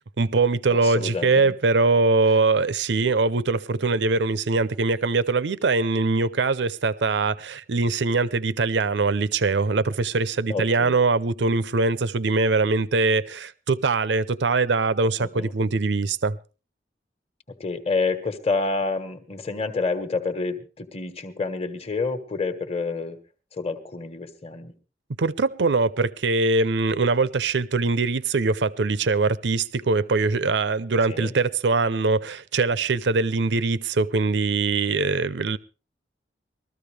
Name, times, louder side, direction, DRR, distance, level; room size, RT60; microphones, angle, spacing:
voice 1, 0.2-16.4 25.2-35.6, right 3 dB, 75° right, 0.6 m, -22 dB
voice 2, 0.7-1.5 10.5-11.0 15.2-15.5 17.6-23.2 23.5-24.7 31.1-31.3, left 3 dB, 35° left, 1.3 m, -28 dB
21.0 x 14.0 x 3.4 m
head